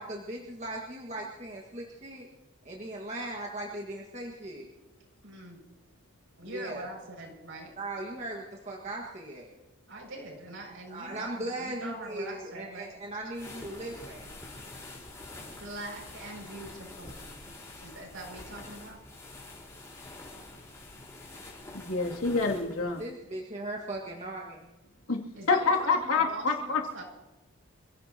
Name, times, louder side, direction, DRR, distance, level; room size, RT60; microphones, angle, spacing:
voice 1, 0.0-2.3 2.6-4.7 6.4-6.9 7.8-9.5 10.9-14.3 23.0-24.7, right 1 dB, 30° right, -2 dB, 1.8 m, -38 dB
voice 2, 5.2-5.6 6.4-7.7 9.9-12.9 15.4-17.4 17.8-19.0 25.4-27.0, right 2 dB, 65° right, 0 dB, 6.6 m, -43 dB
sound 1, 13.3-23.1, left 2 dB, 15° left, 4.4 m, -46 dB
voice 3, 21.7-23.0 25.1-25.2 25.5-26.8, left 4 dB, 75° left, 0 dB, 2.7 m, -27 dB
28.0 x 17.0 x 3.0 m, 1.1 s
head